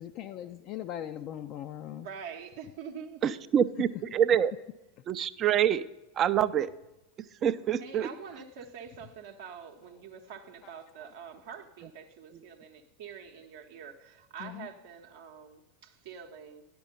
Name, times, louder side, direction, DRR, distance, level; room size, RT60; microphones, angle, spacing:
voice 1, 0.0-2.1 10.6-10.7 11.0-11.1 14.4-14.7, left 11 dB, 40° left, 0.3 m, -40 dB
voice 2, 1.9-3.4 7.7-16.6, right 7 dB, 55° right, 0.7 m, -45 dB
voice 3, 3.2-4.5 5.1-5.8 6.2-6.7 7.4-8.1, right 9 dB, 30° right, 0.4 m, -26 dB
10.5 x 6.1 x 5.3 m
figure-of-eight pair, 85°, 0 cm